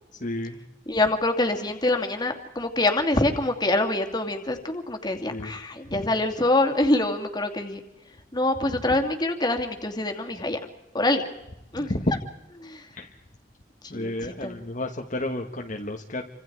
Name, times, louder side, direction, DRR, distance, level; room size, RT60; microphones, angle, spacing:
voice 1, 0.2-0.6 5.3-5.5 5.9-6.0 11.7-12.1 13.0-13.1 13.9-16.2, left 1 dB, 45° left, 2 dB, 1.4 m, -31 dB
voice 2, 0.9-7.8 8.3-10.6 10.9-11.2 11.7-11.9 12.6-12.9 13.9-14.6, left 2 dB, 25° left, 5 dB, 2.5 m, -25 dB
29.5 x 25.5 x 4.8 m, 0.95 s
head